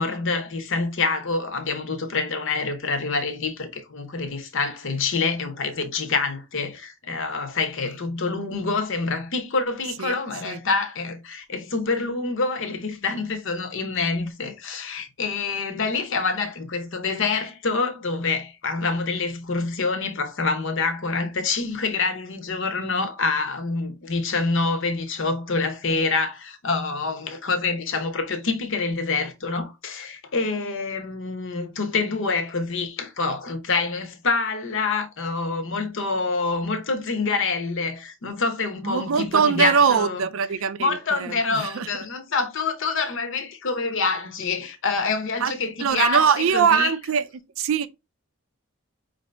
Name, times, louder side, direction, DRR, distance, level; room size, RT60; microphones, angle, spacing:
voice 1, 0.0-40.2 40.8-46.9, left 4 dB, 60° left, 0.8 m, -26 dB
voice 2, 38.8-41.0 41.5-41.9 45.4-45.5 45.8-47.2 47.6-47.9, right 6 dB, 65° right, 0.4 m, -21 dB
4.8 x 2.6 x 3.3 m
head